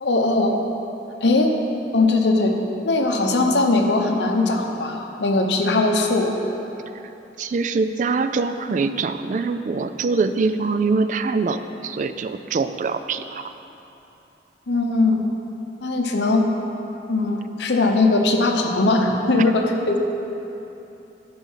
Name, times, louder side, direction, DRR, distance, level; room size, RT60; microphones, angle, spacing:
voice 1, 0.0-0.6 1.2-1.5 1.9-2.5 2.8-6.3 14.7-15.2 15.8-16.5 17.1-20.0, left 2 dB, 80° left, 2 dB, 0.9 m, -20 dB
voice 2, 7.4-13.5, right 4 dB, 45° right, 10 dB, 0.3 m, -23 dB
11.5 x 4.8 x 5.5 m, 3.0 s
head